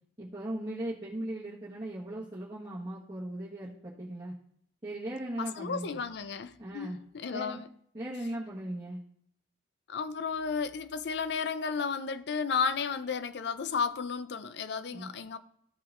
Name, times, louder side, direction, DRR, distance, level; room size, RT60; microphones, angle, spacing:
voice 1, 0.2-4.3 4.8-6.0 6.6-7.0 7.3-7.6 7.9-9.0 14.9-15.1, right 1 dB, 25° right, 1.4 m, -38 dB
voice 2, 5.4-7.7 9.9-15.4, left 5 dB, 60° left, 0.5 m, -33 dB
14.0 x 5.7 x 2.5 m
head